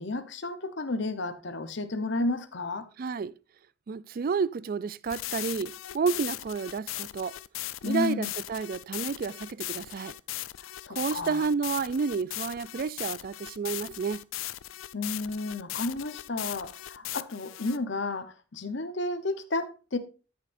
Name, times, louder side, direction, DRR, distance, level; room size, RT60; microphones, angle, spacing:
voice 1, 0.0-2.9 7.8-8.3 10.8-11.4 14.9-20.0, left 2 dB, 60° left, 0.9 m, -32 dB
voice 2, 3.0-3.3 3.9-7.4 7.8-10.2 10.9-14.2, right 5 dB, 45° right, 0.3 m, -30 dB
sound 1, 5.1-17.8, left 15 dB, 80° left, 0.4 m, -38 dB
13.5 x 6.5 x 2.6 m
head